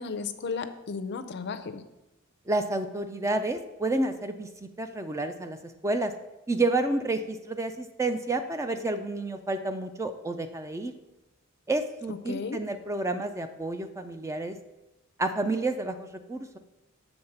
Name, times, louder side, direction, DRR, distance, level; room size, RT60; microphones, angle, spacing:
voice 1, 0.0-1.8 12.1-12.6, left 5 dB, 55° left, 9 dB, 0.5 m, -34 dB
voice 2, 2.5-5.6 5.8-6.1 6.5-10.9 11.7-14.6 15.2-16.6, right 2 dB, 15° right, 8 dB, 0.4 m, -30 dB
7.1 x 3.9 x 6.6 m, 0.98 s
head